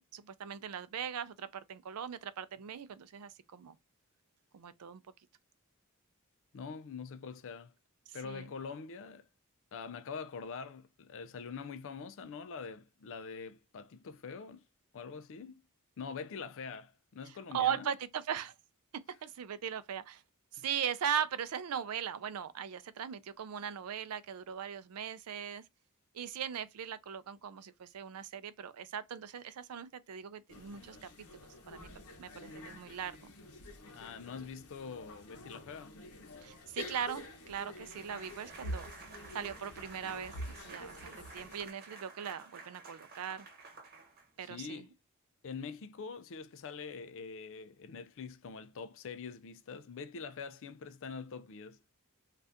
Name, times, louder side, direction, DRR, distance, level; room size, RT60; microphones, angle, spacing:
voice 1, 0.0-3.8 4.5-5.0 8.2-8.5 17.5-18.5 19.2-20.2 20.5-25.6 26.1-31.1 31.7-31.9 32.2-33.3 36.4-38.9 39.3-43.5 44.4-44.8, right 8 dB, 80° right, 0.4 m, -39 dB
voice 2, 6.5-7.7 8.1-9.3 9.7-14.6 14.9-15.6 16.0-17.9 20.6-20.7 33.9-35.9 44.4-44.9 45.4-51.8, left 5 dB, 60° left, 0.4 m, -44 dB
sound 1, 30.5-41.7, left 1 dB, 75° left, 0.8 m, -47 dB
sound 2, 37.8-44.5, right 4 dB, 45° right, 1.0 m, -52 dB
2.6 x 2.4 x 3.4 m
head